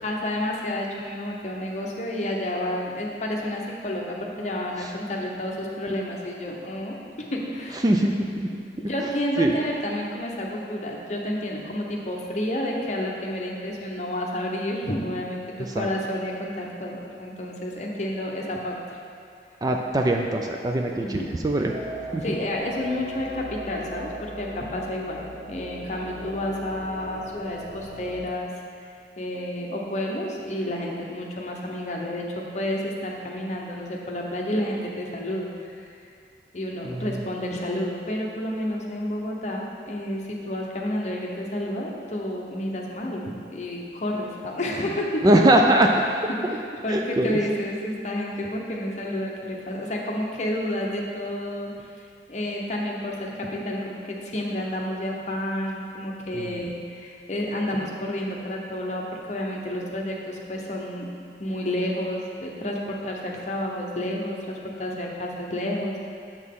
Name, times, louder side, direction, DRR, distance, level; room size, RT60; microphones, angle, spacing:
voice 1, 0.0-7.9 8.8-15.4 15.7-19.0 21.0-21.3 22.2-28.5 29.2-35.9 36.5-45.2 46.3-51.7 52.3-61.1 61.4-66.1, left 1 dB, 40° left, -1 dB, 0.8 m, -30 dB
voice 2, 7.8-8.6 9.4-9.5 15.7-15.9 19.6-21.7 22.1-22.4 36.8-37.2 45.2-45.9 46.9-47.4 56.3-56.7, right 1 dB, 20° right, 2 dB, 0.3 m, -22 dB
sound 1, 21.6-28.2, right 1 dB, 45° right, 0.8 m, -38 dB
7.4 x 6.2 x 3.6 m, 2.4 s
head